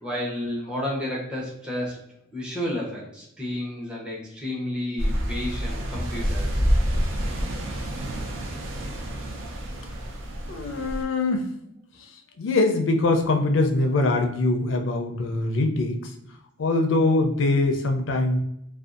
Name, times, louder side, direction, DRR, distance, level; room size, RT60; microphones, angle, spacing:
voice 1, 0.0-2.0 2.3-6.7, left 1 dB, 5° right, -6 dB, 0.7 m, -31 dB
sound 1, 5.0-11.0, equal, 75° right, 0.5 m, -27 dB
voice 2, 10.5-11.5 12.4-16.0 16.6-18.4, left 2 dB, 70° left, 5 dB, 0.4 m, -23 dB
2.5 x 2.3 x 2.4 m, 0.77 s
head